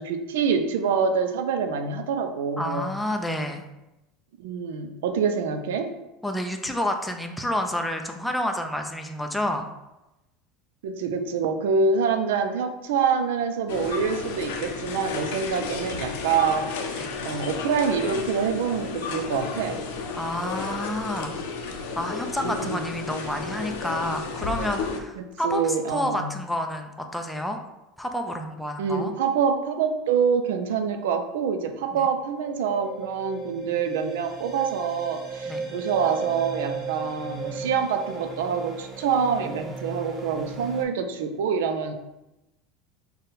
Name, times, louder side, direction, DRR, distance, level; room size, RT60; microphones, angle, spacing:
voice 1, 0.0-2.9 4.4-5.9 10.8-19.8 22.4-22.9 25.2-26.3 28.8-41.9, right 6 dB, 85° right, 7 dB, 0.4 m, -26 dB
voice 2, 2.6-3.6 6.2-9.7 17.0-17.1 20.2-21.3 22.0-27.6 28.0-29.1 31.9-32.0 35.4-35.6, left 1 dB, 5° left, 4 dB, 0.4 m, -29 dB
sound 1, 13.7-25.0, left 4 dB, 80° left, 0.5 m, -32 dB
sound 2, 32.3-40.8, right 5 dB, 20° right, 0.8 m, -36 dB
3.8 x 2.2 x 3.9 m, 0.96 s
supercardioid pair, 110°, 0 cm